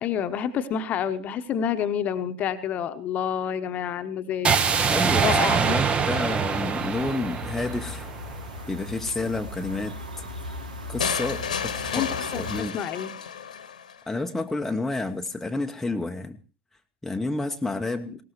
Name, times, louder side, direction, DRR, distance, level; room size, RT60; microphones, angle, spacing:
voice 1, 0.0-4.6 5.2-5.6 11.9-12.1 12.3-13.1 18.1-18.2, left 8 dB, 35° left, 10 dB, 1.1 m, -28 dB
sound 1, 4.4-8.5, right 6 dB, 25° right, 1.0 m, -24 dB
sound 2, 4.8-12.6, left 1 dB, 80° right, 2.0 m, -38 dB
voice 2, 4.9-8.1 8.7-10.3 10.9-12.8 14.1-16.4 17.0-18.1, left 2 dB, 5° left, 4 dB, 0.9 m, -30 dB
sound 3, 11.0-14.0, left 7 dB, 75° left, 1.4 m, -31 dB
20.0 x 18.0 x 3.1 m, 0.35 s
figure-of-eight pair, 80°, 4 cm